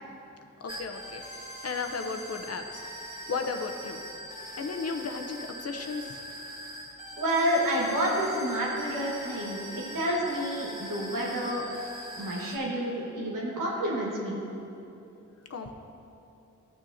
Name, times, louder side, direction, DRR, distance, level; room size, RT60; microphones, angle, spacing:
voice 1, 0.6-1.3 1.6-2.8 3.3-4.0 4.6-6.2 15.5-15.7, left 4 dB, 50° left, 5 dB, 0.8 m, -34 dB
sound 1, 0.7-12.6, equal, 25° left, 1.8 m, -42 dB
voice 2, 7.2-11.6 12.2-14.4, equal, 90° right, -4 dB, 1.6 m, -29 dB
13.0 x 6.4 x 2.8 m, 2.9 s
cardioid pair, 50°, 31 cm